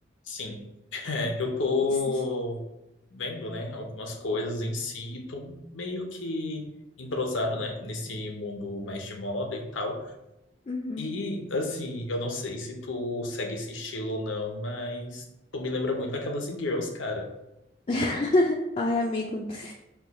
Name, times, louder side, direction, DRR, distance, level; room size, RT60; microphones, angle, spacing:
voice 1, 0.2-0.6 0.9-2.6 3.1-10.1 11.0-15.2 15.5-17.3, left 2 dB, 85° left, 3 dB, 0.8 m, -31 dB
voice 2, 10.7-11.1 17.9-19.7, left 2 dB, 30° left, 0 dB, 0.3 m, -26 dB
4.7 x 2.3 x 4.1 m, 0.92 s
head